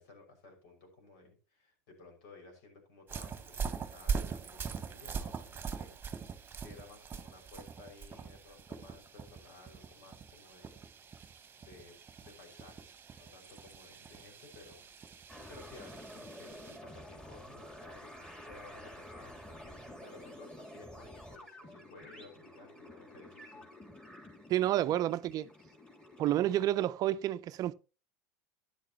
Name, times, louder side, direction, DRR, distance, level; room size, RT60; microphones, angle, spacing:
voice 1, 0.0-10.8 11.6-12.9 13.1-14.9 15.1-23.7, left 3 dB, 65° left, 5.9 m, -56 dB
sound 1, 3.1-16.8, right 6 dB, 25° right, 1.3 m, -42 dB
sound 2, 15.3-26.7, equal, 10° left, 3.2 m, -50 dB
voice 2, 24.5-25.5 26.2-27.7, right 13 dB, 45° right, 0.6 m, -29 dB
13.0 x 10.0 x 3.0 m
hypercardioid pair, 85°, 9 cm